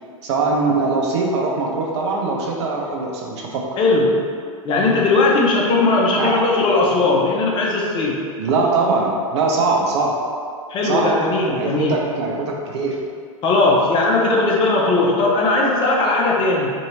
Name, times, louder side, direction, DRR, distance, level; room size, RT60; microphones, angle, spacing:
voice 1, 0.2-3.7 6.2-6.4 8.4-10.2 10.8-11.1 11.6-13.0, right 3 dB, 55° right, -1 dB, 0.6 m, -21 dB
voice 2, 3.8-4.3 4.6-8.2 10.7-12.0 13.4-16.7, left 2 dB, 30° left, -2 dB, 0.6 m, -18 dB
2.7 x 2.7 x 2.8 m, 2.1 s
figure-of-eight pair, 90°, 18 cm